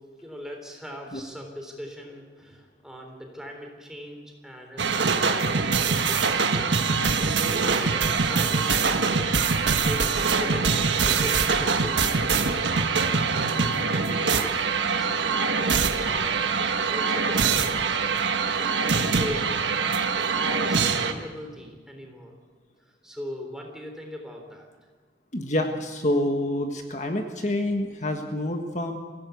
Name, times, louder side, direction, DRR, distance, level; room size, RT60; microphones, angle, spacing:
voice 1, 0.0-6.7 7.0-8.7 9.8-12.8 13.3-14.5 14.9-17.9 18.6-22.3 23.0-24.7, equal, 5° right, 2 dB, 3.7 m, -39 dB
sound 1, 4.8-21.1, right 5 dB, 90° right, 1.5 m, -24 dB
voice 2, 25.3-29.0, left 1 dB, 40° left, 4 dB, 1.6 m, -27 dB
23.5 x 16.5 x 8.4 m, 1.5 s
head